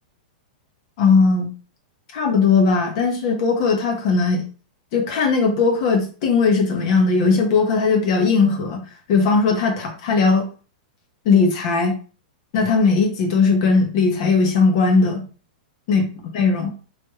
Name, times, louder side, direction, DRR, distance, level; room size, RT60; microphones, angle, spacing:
voice 1, 1.0-1.5 2.1-4.4 4.9-8.8 9.1-10.5 11.2-12.0 12.5-15.2 15.9-16.0 16.3-16.7, left 4 dB, 35° left, 1 dB, 1.2 m, -18 dB
4.8 x 3.2 x 3.1 m, 0.37 s
supercardioid pair, 175°, 5 cm